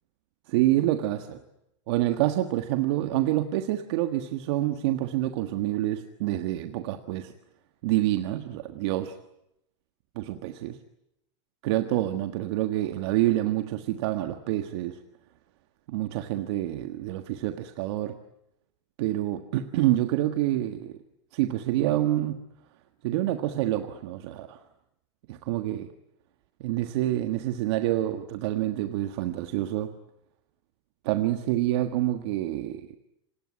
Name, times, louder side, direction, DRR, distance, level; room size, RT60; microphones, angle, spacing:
voice 1, 0.5-1.4 1.9-7.3 7.8-9.1 10.1-10.7 11.6-15.0 15.9-18.1 19.0-20.9 21.3-22.4 23.0-24.6 25.3-25.9 26.6-29.9 31.0-32.9, right 14 dB, 65° right, 7 dB, 1.5 m, -27 dB
27.0 x 19.5 x 9.8 m, 0.83 s
supercardioid pair, 130°, 15 cm